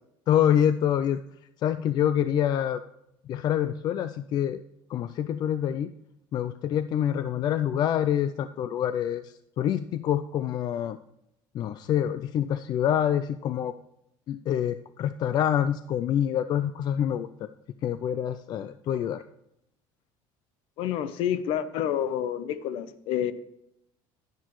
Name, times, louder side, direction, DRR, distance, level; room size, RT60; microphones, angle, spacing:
voice 1, 0.3-1.2 1.6-2.8 3.3-4.6 4.9-5.9 6.3-11.0 11.5-13.7 14.3-17.5 17.8-19.2, left 10 dB, 45° left, 12 dB, 0.4 m, -26 dB
voice 2, 20.8-23.3, left 10 dB, 65° left, 14 dB, 0.8 m, -28 dB
11.0 x 10.0 x 3.1 m, 0.80 s
cardioid pair, 125°, 10 cm